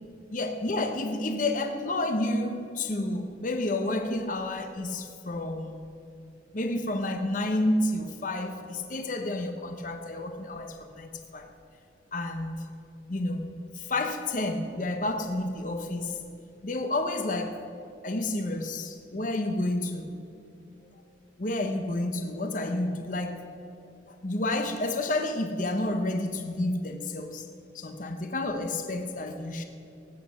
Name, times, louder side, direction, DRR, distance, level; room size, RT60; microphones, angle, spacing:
voice 1, 0.3-5.8 6.5-11.5 12.1-12.7 13.1-16.2 16.6-17.6 18.0-20.1 20.8-21.0 21.4-23.5 24.1-27.4 27.7-29.6, left 2 dB, 45° left, 6 dB, 0.9 m, -30 dB
18.0 x 8.4 x 7.1 m, 2.6 s
head